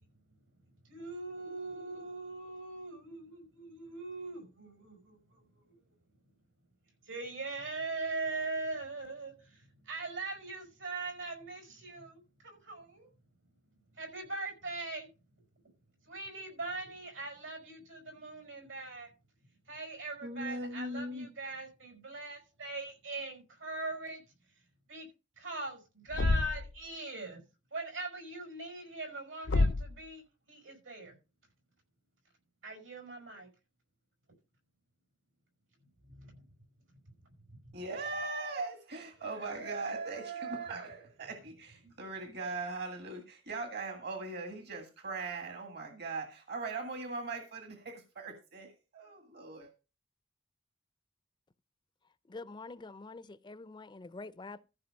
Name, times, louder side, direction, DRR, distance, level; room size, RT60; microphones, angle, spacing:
voice 1, 0.8-5.6 7.1-13.1 14.0-15.1 16.1-19.1 19.7-24.2 24.9-25.1 25.4-27.4 27.7-31.1 32.6-33.5 36.1-36.4 41.8-41.9, right 2 dB, 85° right, 5.3 m, -41 dB
voice 2, 20.2-21.3 37.7-49.7, right 3 dB, 60° right, 1.7 m, -40 dB
Thump thud, 26.1-26.8 29.5-30.0, left 2 dB, 70° left, 0.6 m, -28 dB
voice 3, 52.3-54.6, left 3 dB, 25° left, 0.4 m, -46 dB
14.0 x 4.8 x 6.3 m
head